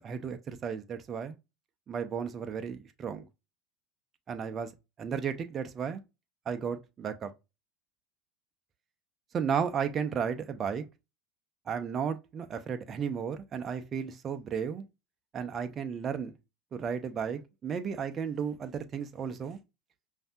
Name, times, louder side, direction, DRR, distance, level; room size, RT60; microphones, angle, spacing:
voice 1, 0.0-1.4 1.9-3.3 4.3-4.7 5.0-6.0 6.5-7.3 9.3-10.8 11.7-14.8 15.3-16.3 16.7-19.6, right 7 dB, 35° right, 0.6 m, -34 dB
5.2 x 2.7 x 2.3 m
hypercardioid pair, 80°, 0 cm